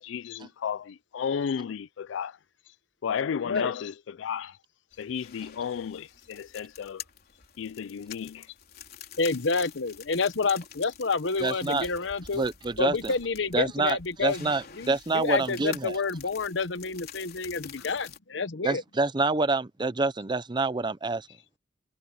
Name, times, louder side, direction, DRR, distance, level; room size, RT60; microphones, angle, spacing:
voice 1, 0.0-2.4 3.0-4.6 5.0-7.0 7.6-8.5, left 7 dB, 85° left, 0.4 m, -33 dB
sound 1, 4.9-18.2, left 9 dB, 55° left, 3.8 m, -47 dB
voice 2, 9.2-12.4 12.8-14.5 14.8-18.8, left 4 dB, 70° left, 1.0 m, -29 dB
voice 3, 11.4-11.9 12.3-13.1 13.5-16.0 18.6-21.3, right 3 dB, 25° right, 0.6 m, -27 dB
head